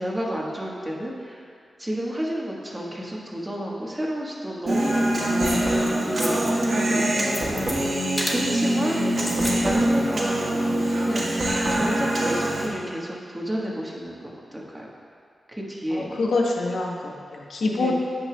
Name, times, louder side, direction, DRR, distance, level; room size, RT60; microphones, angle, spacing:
voice 1, 0.0-1.5 1.8-9.1 9.6-14.9 15.5-16.2 17.7-17.9, equal, 15° right, -3 dB, 1.4 m, -31 dB
Human voice, 4.7-12.7, right 1 dB, 50° right, 1.4 m, -24 dB
sound 1, 5.4-5.9 6.2-6.6 6.9-7.8 8.2-8.4 9.1-9.6 9.9-10.0, left 1 dB, 25° left, 1.0 m, -32 dB
voice 2, 8.8-9.2 15.9-17.9, left 3 dB, 85° left, -1 dB, 1.0 m, -26 dB
16.0 x 5.6 x 2.3 m, 2.1 s
wide cardioid pair, 110°, 0 cm